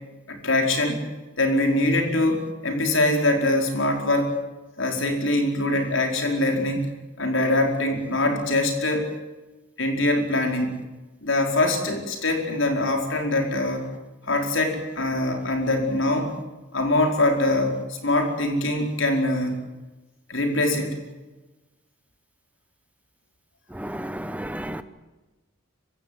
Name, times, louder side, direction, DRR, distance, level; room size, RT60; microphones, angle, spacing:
voice 1, 0.3-1.0 1.4-4.4 4.8-6.9 7.2-9.1 9.8-10.7 11.2-13.9 14.3-16.3 16.7-19.6 20.3-21.0, left 2 dB, 75° left, 3 dB, 4.8 m, -23 dB
voice 2, 23.8-24.8, right 1 dB, 5° right, 12 dB, 0.9 m, -32 dB
25.0 x 16.5 x 9.5 m, 1.1 s
head